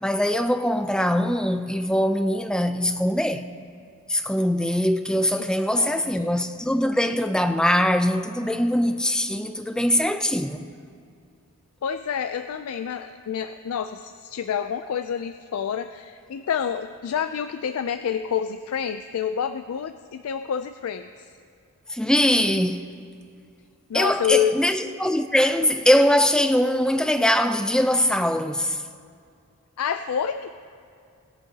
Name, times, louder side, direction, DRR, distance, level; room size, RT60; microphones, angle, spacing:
voice 1, 0.0-3.5 4.1-10.7 21.9-22.9 23.9-28.8, left 1 dB, 5° left, 0.4 m, -22 dB
voice 2, 5.8-6.4 11.8-21.1 23.9-24.5 29.8-30.5, left 8 dB, 75° left, 0.4 m, -28 dB
20.0 x 11.0 x 2.8 m
head